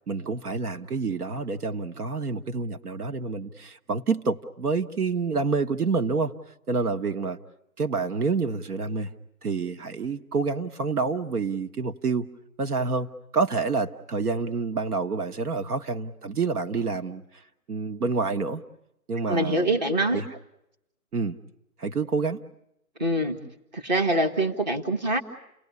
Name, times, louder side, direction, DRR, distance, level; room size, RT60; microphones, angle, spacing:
voice 1, 0.1-6.3 6.7-7.4 7.8-9.1 9.4-12.3 12.6-13.1 13.3-17.2 17.7-18.6 19.1-19.8 20.1-20.3 21.1-21.4 21.8-22.4, right 4 dB, 80° right, 8 dB, 1.4 m, -28 dB
voice 2, 19.3-20.2 23.0-23.4 23.7-25.2, right 1 dB, 30° right, 4 dB, 1.8 m, -24 dB
30.0 x 19.0 x 9.6 m, 0.82 s
hypercardioid pair, 180°, 45 cm